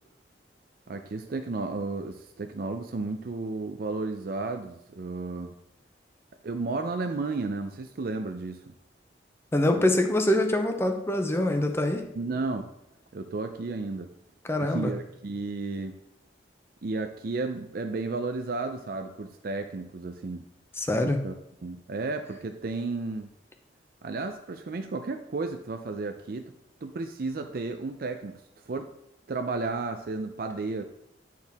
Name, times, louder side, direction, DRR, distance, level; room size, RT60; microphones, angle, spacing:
voice 1, 0.9-5.5 6.4-8.7 9.8-9.9 12.1-12.7 13.1-14.1 14.6-16.0 16.8-20.4 21.0-21.3 21.6-23.3 24.0-26.5 26.8-28.4 28.7-28.9 29.3-30.8, right 3 dB, 55° right, 5 dB, 0.5 m, -33 dB
voice 2, 9.5-12.1 14.4-15.0 20.8-21.2, left 1 dB, 15° left, 5 dB, 0.7 m, -24 dB
9.6 x 4.6 x 3.5 m, 0.79 s
head